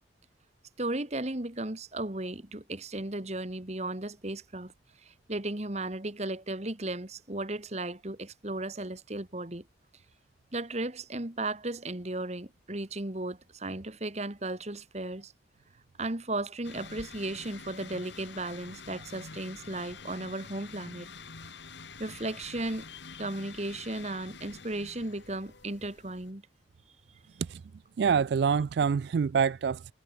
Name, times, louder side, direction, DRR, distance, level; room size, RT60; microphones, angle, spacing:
voice 1, 0.8-4.7 5.0-9.7 10.5-15.3 16.0-21.1 22.0-22.9 23.2-26.4, right 2 dB, 35° right, 1.7 m, -35 dB
sound 1, 16.6-26.3, left 4 dB, 70° left, 2.2 m, -47 dB
voice 2, 28.0-29.9, right 6 dB, 60° right, 0.3 m, -26 dB
head